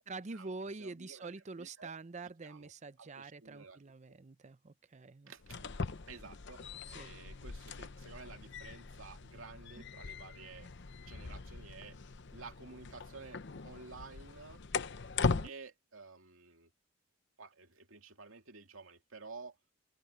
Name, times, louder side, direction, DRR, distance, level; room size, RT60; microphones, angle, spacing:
voice 1, 0.0-5.3 6.9-7.1 15.3-15.5, right 3 dB, 35° right, 0.6 m, -46 dB
voice 2, 0.8-1.3 1.6-1.9 2.4-2.7 3.0-3.8 4.1-4.2 5.3-5.6 6.1-6.6 6.9-10.7 11.1-12.0 12.3-14.6 15.4-16.7 17.4-19.6, right 4 dB, 85° right, 2.4 m, -52 dB
sound 1, 5.4-15.5, left 4 dB, 60° left, 0.8 m, -40 dB
head